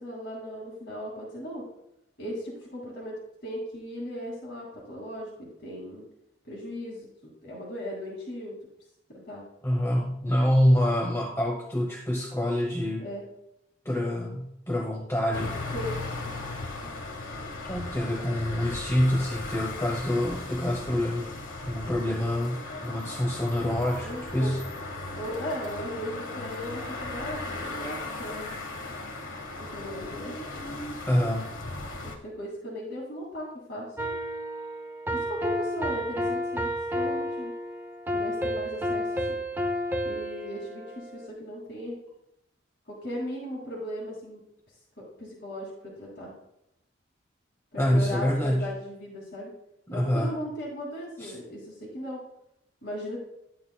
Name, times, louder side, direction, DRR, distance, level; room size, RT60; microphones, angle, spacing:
voice 1, 0.0-1.7 2.2-6.1 6.4-8.6 9.1-9.4 13.0-13.2 15.7-16.0 24.0-24.5 25.1-28.5 29.6-30.3 32.0-34.1 35.1-37.5 38.1-39.4 40.0-42.0 42.9-46.3 47.7-49.5 49.9-52.2 52.8-53.2, equal, 55° left, -4 dB, 2.4 m, -37 dB
voice 2, 9.6-13.0 13.8-15.6 17.7-21.3 21.6-24.6 31.0-31.5 47.8-48.7 49.9-50.3 51.2-51.3, equal, 15° left, 0 dB, 0.9 m, -26 dB
sound 1, 15.3-32.2, left 2 dB, 85° left, 1.4 m, -37 dB
sound 2, 34.0-41.3, equal, 10° right, 0.6 m, -31 dB
12.0 x 8.9 x 2.2 m, 0.82 s
head